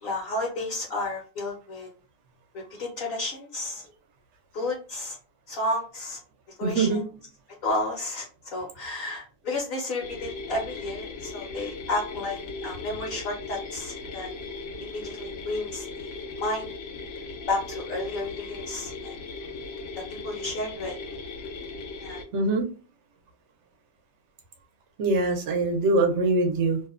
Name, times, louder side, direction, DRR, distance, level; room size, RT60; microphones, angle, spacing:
voice 1, 0.0-1.9 2.5-3.9 4.5-5.2 5.5-6.2 6.6-7.0 7.6-8.3 8.5-14.3 14.9-16.7 17.5-19.1 20.1-21.0 22.0-22.2, left 2 dB, 60° left, -1 dB, 0.9 m, -32 dB
voice 2, 6.6-7.0 22.3-22.7 25.0-26.8, right 3 dB, 75° right, 4 dB, 0.9 m, -23 dB
sound 1, 10.0-22.2, left 3 dB, 90° left, 1.0 m, -38 dB
2.6 x 2.1 x 2.3 m, 0.36 s
omnidirectional pair, 1.2 m